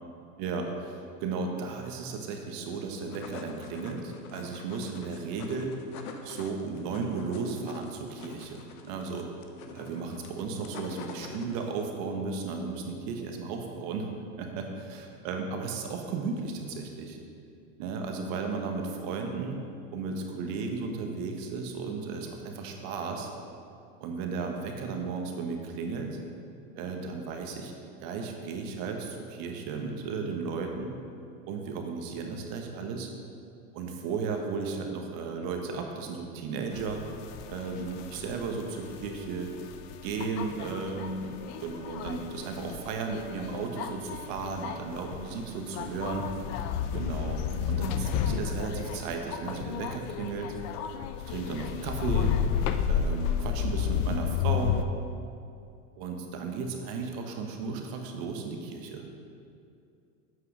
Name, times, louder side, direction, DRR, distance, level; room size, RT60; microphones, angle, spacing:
voice 1, 0.4-5.7 6.2-9.3 9.7-14.1 14.4-17.2 17.8-19.6 19.9-23.3 24.0-26.2 26.8-27.7 28.0-31.0 31.5-33.1 33.7-37.0 37.5-39.5 40.0-46.2 46.9-47.4 47.7-50.6 51.2-52.3 52.9-54.8 56.0-59.0, right 4 dB, 50° right, 3 dB, 1.4 m, -35 dB
sound 1, 2.8-11.9, left 5 dB, 70° left, 1.0 m, -46 dB
sound 2, 36.7-54.8, left 8 dB, 40° left, 0.5 m, -32 dB
7.9 x 5.5 x 6.3 m, 2.5 s
hypercardioid pair, 115°, 45 cm